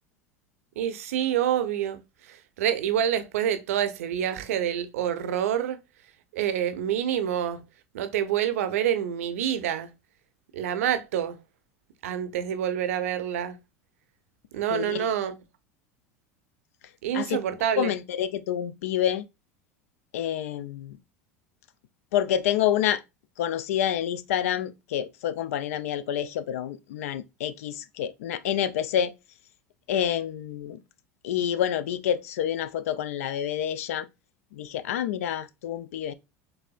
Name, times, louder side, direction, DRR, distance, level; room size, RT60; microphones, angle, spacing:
voice 1, 0.8-5.8 6.3-7.6 7.9-9.9 10.5-11.4 12.0-13.6 14.5-15.4 17.0-17.9, right 10 dB, 75° right, 0.6 m, -27 dB
voice 2, 14.7-15.1 17.1-17.4 17.8-19.2 20.1-21.0 22.1-23.0 23.4-29.1 29.9-30.8 31.2-34.1 34.5-36.1, left 10 dB, 75° left, 0.4 m, -28 dB
4.1 x 3.3 x 2.3 m
hypercardioid pair, 80°, 8 cm